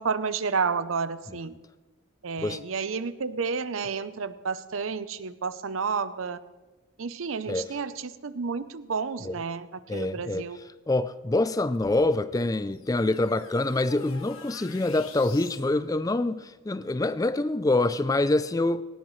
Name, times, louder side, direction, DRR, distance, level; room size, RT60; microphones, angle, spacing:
voice 1, 0.0-1.5 2.2-6.4 7.0-9.7 9.9-10.6, right 5 dB, 80° right, 0.7 m, -30 dB
voice 2, 9.9-10.5 10.9-18.8, left 2 dB, 15° left, 0.3 m, -26 dB
sound 1, 11.8-15.7, left 6 dB, 85° left, 1.3 m, -48 dB
18.5 x 17.5 x 3.2 m
head